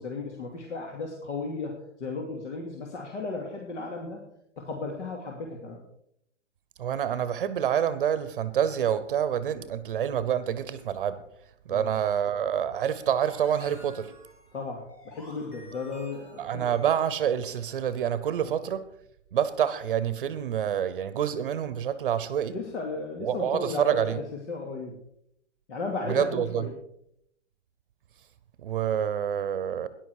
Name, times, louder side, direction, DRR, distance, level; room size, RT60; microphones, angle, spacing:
voice 1, 0.0-4.2 4.6-5.8 9.5-9.7 11.7-11.9 14.5-16.6 18.4-18.5 22.5-25.0 25.7-26.7, left 3 dB, 70° left, 2.6 m, -35 dB
voice 2, 6.8-11.2 11.7-14.1 16.4-18.8 19.3-22.6 23.2-24.2 26.1-26.7 28.6-29.9, right 9 dB, 45° right, 0.8 m, -27 dB
sound 1, 13.0-17.9, equal, 15° left, 2.1 m, -50 dB
13.5 x 10.5 x 4.8 m
hypercardioid pair, 160°, 37 cm